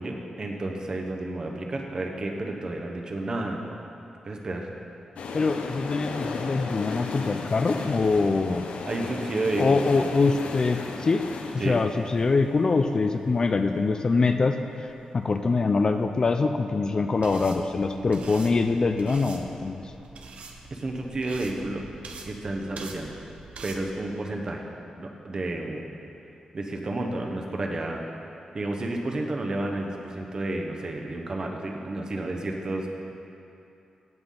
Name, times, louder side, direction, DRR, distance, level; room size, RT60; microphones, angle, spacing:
voice 1, 0.0-3.6 4.2-4.7 8.8-10.1 11.6-11.8 20.7-21.9 22.2-23.1 23.6-24.6 25.0-25.8 26.5-28.0 28.5-32.9, right 2 dB, 35° right, 1 dB, 0.9 m, -31 dB
sound 1, 5.2-15.0 15.3-15.4, left 4 dB, 80° left, 0.7 m, -36 dB
voice 2, 5.3-8.7 9.6-11.3 11.5-19.9, left 4 dB, 35° left, 7 dB, 0.3 m, -24 dB
sound 2, 17.2-23.8, right 3 dB, 70° right, 0.8 m, -44 dB
16.5 x 5.9 x 3.8 m, 2.8 s
wide cardioid pair, 155°, 2 cm